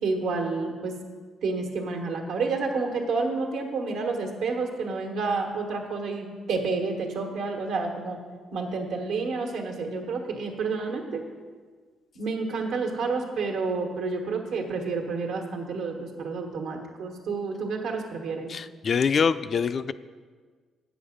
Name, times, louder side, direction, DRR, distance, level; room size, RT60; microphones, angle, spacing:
voice 1, 0.0-1.0 1.4-8.2 8.5-11.2 12.1-18.5, right 4 dB, 85° right, 2 dB, 1.3 m, -29 dB
voice 2, 18.5-19.9, left 6 dB, 50° left, 13 dB, 0.3 m, -24 dB
8.4 x 7.0 x 5.1 m, 1.5 s
cardioid pair, 90°, 0 cm